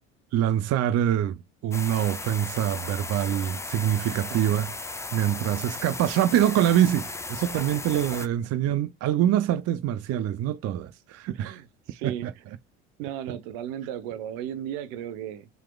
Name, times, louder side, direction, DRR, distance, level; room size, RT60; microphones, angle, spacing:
voice 1, 0.3-11.6 12.0-12.3, right 11 dB, 45° right, 0.5 m, -25 dB
sound 1, 1.7-8.3, left 3 dB, 10° left, 0.5 m, -36 dB
voice 2, 7.9-8.3 11.3-12.3 13.0-15.5, right 10 dB, 70° right, 1.0 m, -35 dB
4.5 x 4.1 x 2.3 m
hypercardioid pair, 80°, 35 cm